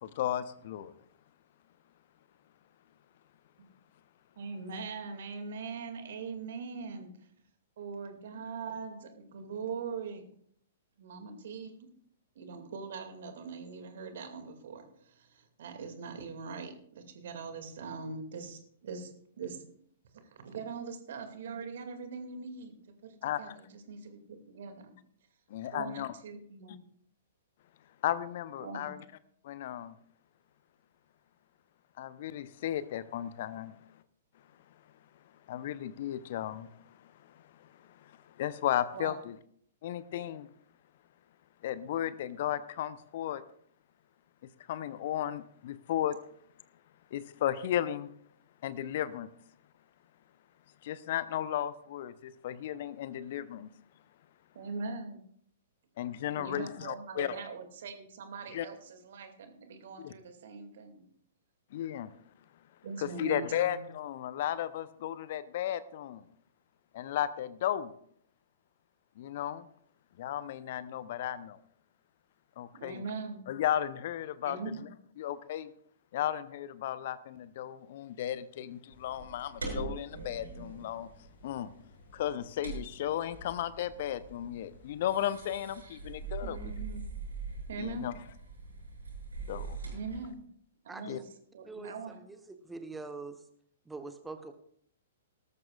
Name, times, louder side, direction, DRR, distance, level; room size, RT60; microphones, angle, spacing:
voice 1, 0.0-0.9 23.2-23.6 25.5-26.1 28.0-29.0 29.4-29.9 32.0-33.7 35.5-39.3 39.8-40.5 41.6-43.4 44.7-46.2 47.1-48.1 48.6-49.3 50.8-53.7 56.0-57.4 58.5-58.7 60.0-60.1 61.7-62.1 63.0-66.2 66.9-67.9 69.2-69.7 70.2-71.6 72.6-73.0 73.5-74.6 75.2-75.7 76.1-81.1 81.4-81.7 82.1-86.6 87.8-88.1 89.5-89.8 91.0-91.2, left 11 dB, 50° left, 16 dB, 0.7 m, -34 dB
voice 2, 4.4-7.3 7.8-10.2 11.0-11.7 12.4-19.6 20.1-22.7 23.0-24.9 25.7-26.9 28.6-28.9 38.9-39.2 54.5-55.2 56.3-61.0 62.8-63.8 72.7-73.4 74.4-74.9 86.4-87.0 87.7-88.1 89.9-90.4 90.8-91.2 91.5-92.2, right 5 dB, 55° right, 6 dB, 2.3 m, -42 dB
sound 1, 78.9-90.3, right 4 dB, 75° right, 6.7 m, -43 dB
voice 3, 90.9-91.2 91.7-91.9 92.3-93.4 93.9-94.5, right 3 dB, 10° right, 7 dB, 1.0 m, -43 dB
18.5 x 13.5 x 2.4 m, 0.64 s
figure-of-eight pair, 110°, 0 cm